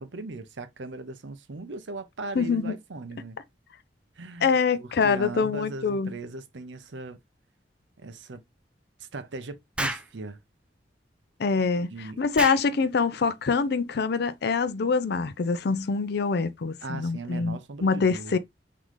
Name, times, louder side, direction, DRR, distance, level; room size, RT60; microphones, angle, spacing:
voice 1, 0.0-3.4 4.2-7.2 8.0-8.4 9.0-10.4 11.9-12.2 16.8-18.4, right 2 dB, 80° right, 0.7 m, -38 dB
voice 2, 2.4-2.8 4.4-6.1 11.4-18.4, left 5 dB, 65° left, 0.5 m, -25 dB
Explosion, 9.8-10.1 12.3-12.7, right 1 dB, 5° right, 0.4 m, -30 dB
3.8 x 3.7 x 3.1 m
head